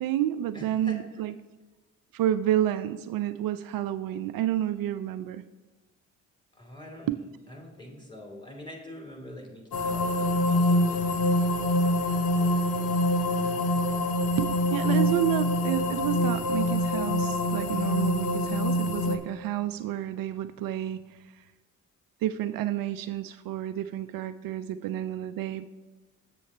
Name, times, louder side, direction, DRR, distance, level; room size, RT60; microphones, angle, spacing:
voice 1, 0.0-1.4 2.1-5.4 7.1-7.2 14.4-21.4 22.2-25.6, right 12 dB, 60° right, 11 dB, 0.5 m, -30 dB
voice 2, 0.5-1.0 6.6-7.2 7.5-10.6 10.9-11.4, left 1 dB, 10° left, 0 dB, 2.8 m, -44 dB
sound 1, 9.7-19.2, left 1 dB, 70° left, 1.0 m, -25 dB
7.3 x 7.1 x 4.2 m, 1.2 s
hypercardioid pair, 45°, 39 cm